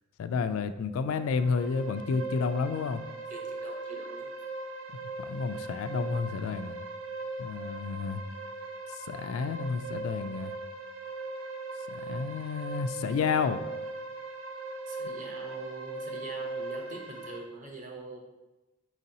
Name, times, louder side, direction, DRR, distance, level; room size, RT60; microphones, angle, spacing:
voice 1, 0.2-3.0 5.3-6.8 7.4-8.2 8.9-10.5 11.9-13.6, left 5 dB, 85° left, 10 dB, 0.3 m, -30 dB
sound 1, 1.1-17.4, right 3 dB, 75° right, 0.6 m, -39 dB
voice 2, 3.3-4.3 14.9-18.2, right 3 dB, 40° right, 1 dB, 0.7 m, -44 dB
4.5 x 4.1 x 2.8 m, 1.1 s
head